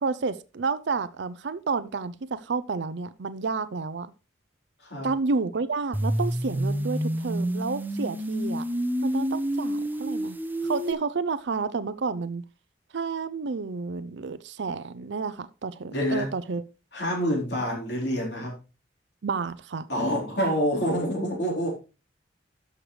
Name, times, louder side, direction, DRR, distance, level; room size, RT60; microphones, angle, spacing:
voice 1, 0.0-4.1 5.0-8.6 9.0-10.4 10.6-12.4 12.9-16.6 19.2-19.9, right 4 dB, 70° right, 14 dB, 0.5 m, -30 dB
voice 2, 4.8-5.1 15.9-16.3 16.9-18.5 19.9-21.7, equal, 60° left, -2 dB, 4.1 m, -27 dB
sound 1, 5.9-10.9, right 1 dB, 10° right, 0.6 m, -28 dB
12.5 x 6.5 x 3.2 m, 0.31 s
head